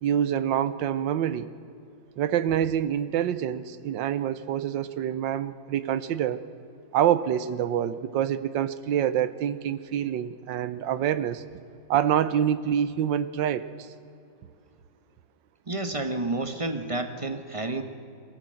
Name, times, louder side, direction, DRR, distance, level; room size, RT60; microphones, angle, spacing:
voice 1, 0.0-1.5 2.2-6.4 6.9-11.4 11.9-13.9, right 10 dB, 75° right, 14 dB, 1.4 m, -26 dB
voice 2, 15.7-17.8, right 2 dB, 25° right, 7 dB, 0.8 m, -30 dB
22.5 x 15.5 x 7.7 m, 2.4 s
omnidirectional pair, 2.1 m